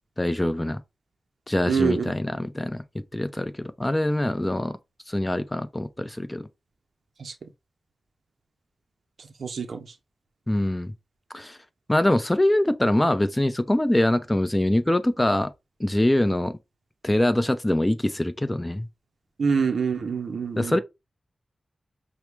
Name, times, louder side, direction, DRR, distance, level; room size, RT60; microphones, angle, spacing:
voice 1, 0.2-0.8 1.5-4.8 5.1-6.5 10.5-10.9 11.3-11.6 11.9-15.5 15.8-16.6 17.0-18.9 20.6-20.8, left 1 dB, 15° left, 0.5 m, -24 dB
voice 2, 1.7-2.1 7.2-7.4 9.2-9.9 19.4-20.8, right 5 dB, 85° right, 0.5 m, -26 dB
5.7 x 2.1 x 3.2 m
wide cardioid pair, 80°, 0 cm